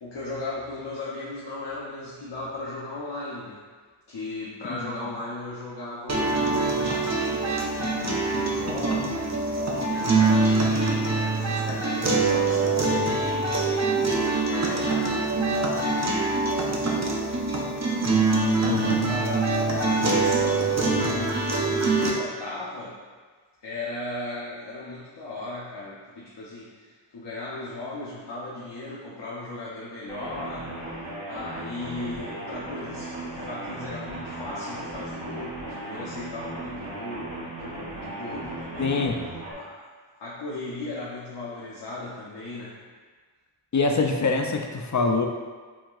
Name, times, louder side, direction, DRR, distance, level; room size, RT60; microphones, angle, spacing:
voice 1, 0.0-3.6 4.1-17.0 19.0-23.0 23.6-30.9 31.3-39.0 39.5-39.9 40.1-42.8, left 2 dB, 65° left, -7 dB, 0.8 m, -37 dB
sound 1, 6.1-22.1, right 3 dB, 35° right, 0.7 m, -24 dB
voice 2, 18.6-19.1 38.8-39.2 43.7-45.3, left 3 dB, 40° left, 3 dB, 0.5 m, -24 dB
sound 2, 30.1-39.5, right 2 dB, 70° right, 1.1 m, -36 dB
7.3 x 2.8 x 2.4 m, 1.5 s
wide cardioid pair, 65°, 45 cm